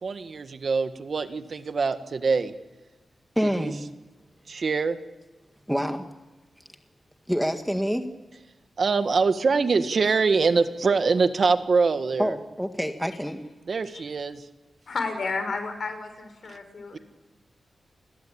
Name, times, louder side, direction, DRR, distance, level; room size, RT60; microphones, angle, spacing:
voice 1, 0.0-2.5 3.4-3.7 4.5-5.0 8.8-12.3 13.7-14.4 16.9-17.0, right 4 dB, 55° right, 9 dB, 1.7 m, -24 dB
voice 2, 3.3-3.8 5.7-6.0 7.3-8.1 12.2-13.4, equal, ahead, 6 dB, 1.8 m, -26 dB
voice 3, 14.9-17.0, left 4 dB, 60° left, 8 dB, 6.0 m, -32 dB
29.5 x 21.0 x 8.9 m, 1.2 s
wide cardioid pair, 110°, 0 cm